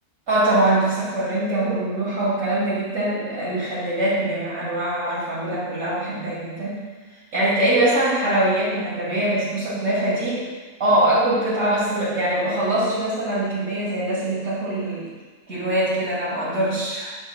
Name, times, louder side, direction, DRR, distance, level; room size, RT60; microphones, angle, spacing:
voice 1, 0.3-6.8 7.3-10.4 10.8-15.1 15.5-17.2, right 1 dB, 80° right, -9 dB, 2.7 m, -23 dB
9.9 x 6.0 x 2.2 m, 1.3 s
omnidirectional pair, 1.3 m